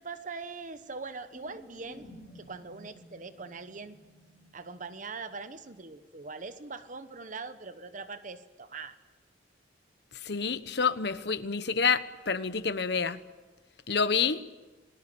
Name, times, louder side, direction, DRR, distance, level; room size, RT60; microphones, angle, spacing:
voice 1, 0.0-2.1 2.3-4.0 4.5-9.0, right 4 dB, 45° right, 11 dB, 1.0 m, -42 dB
sound 1, 1.3-5.9, equal, 25° right, 4.2 m, -54 dB
voice 2, 10.2-13.2 13.9-14.4, left 5 dB, 65° left, 13 dB, 1.1 m, -28 dB
29.5 x 19.5 x 7.0 m, 1.2 s
head